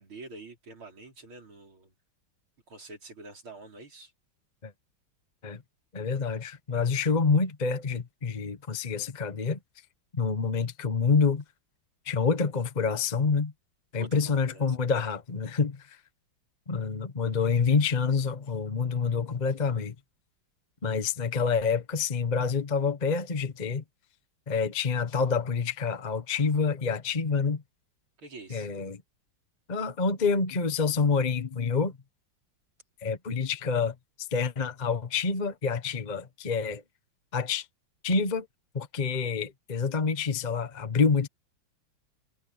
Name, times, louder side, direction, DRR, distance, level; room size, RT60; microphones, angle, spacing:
voice 1, 0.0-1.9 2.7-4.1 14.0-14.6 28.2-28.7, right 2 dB, 85° right, 5.7 m, -46 dB
voice 2, 5.9-9.6 10.1-11.4 12.0-13.5 13.9-16.0 16.7-19.9 20.8-23.8 24.5-27.6 28.5-29.0 29.7-32.0 33.0-33.9 34.3-36.8 37.3-37.7 38.0-38.5 38.7-41.3, left 5 dB, 25° left, 1.1 m, -27 dB
omnidirectional pair, 2.2 m